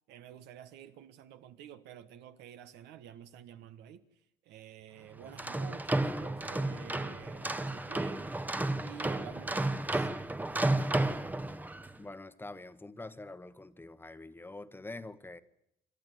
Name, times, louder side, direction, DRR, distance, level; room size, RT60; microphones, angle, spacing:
voice 1, 0.1-4.1 4.4-8.3 8.8-10.1, right 10 dB, 85° right, 1.4 m, -50 dB
sound 1, 5.2-11.9, right 2 dB, 10° right, 1.0 m, -32 dB
voice 2, 12.0-15.4, left 2 dB, 10° left, 1.1 m, -45 dB
27.5 x 12.5 x 9.3 m
cardioid pair, 110°, 17 cm